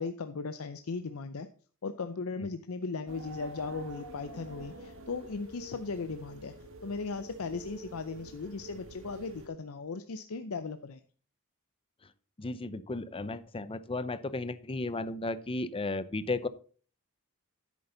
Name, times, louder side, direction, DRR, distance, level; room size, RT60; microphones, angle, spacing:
voice 1, 0.0-1.5 1.8-6.5 6.8-11.0, left 4 dB, 70° left, 9 dB, 0.6 m, -37 dB
sound 1, 3.1-9.5, right 2 dB, 65° right, 1.7 m, -47 dB
voice 2, 12.4-16.5, left 2 dB, 25° left, 15 dB, 0.6 m, -34 dB
10.5 x 8.4 x 3.9 m, 0.41 s
head